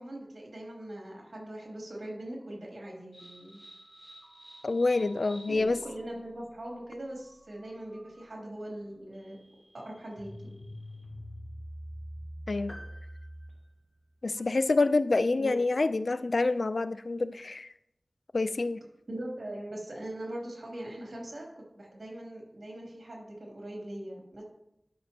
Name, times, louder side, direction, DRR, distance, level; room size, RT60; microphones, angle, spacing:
voice 1, 0.0-3.6 5.5-9.4 9.7-10.6 15.4-15.5 19.1-24.4, right 1 dB, 85° right, -2 dB, 2.6 m, -41 dB
sound 1, 3.1-13.7, equal, 20° right, 3.0 m, -47 dB
voice 2, 4.6-5.8 12.5-12.8 14.2-17.7 18.3-18.8, left 3 dB, 85° left, 13 dB, 0.3 m, -27 dB
sound 2, 12.7-14.5, equal, 30° left, 1.5 m, -52 dB
11.5 x 6.0 x 2.8 m, 0.83 s
wide cardioid pair, 45°, 0 cm